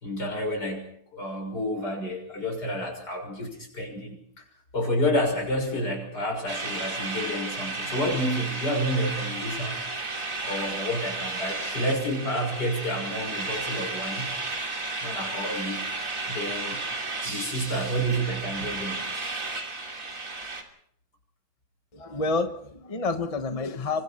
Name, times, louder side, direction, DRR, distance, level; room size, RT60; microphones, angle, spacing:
voice 1, 0.0-4.2 4.7-9.8 10.4-14.3 15.0-15.9 16.3-16.8 17.2-19.1, equal, 80° left, 2 dB, 7.0 m, -29 dB
sound 1, 6.5-20.6, right 3 dB, 55° right, 3.3 m, -33 dB
voice 2, 21.9-24.0, left 3 dB, 25° left, 7 dB, 1.2 m, -29 dB
28.0 x 24.5 x 4.4 m, 0.68 s
omnidirectional pair, 1.7 m